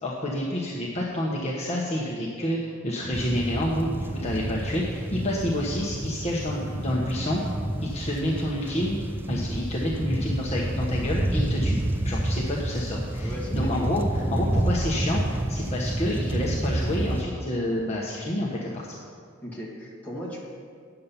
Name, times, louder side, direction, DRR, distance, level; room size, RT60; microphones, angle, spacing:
voice 1, 0.0-7.4 7.8-9.0 9.3-18.9, left 1 dB, 35° left, -4 dB, 1.0 m, -29 dB
sound 1, 3.1-17.2, right 1 dB, 10° right, 0.4 m, -29 dB
voice 2, 13.2-13.9 14.3-14.5 19.4-20.4, equal, 10° left, -5 dB, 1.9 m, -37 dB
9.4 x 6.8 x 5.7 m, 2.2 s
head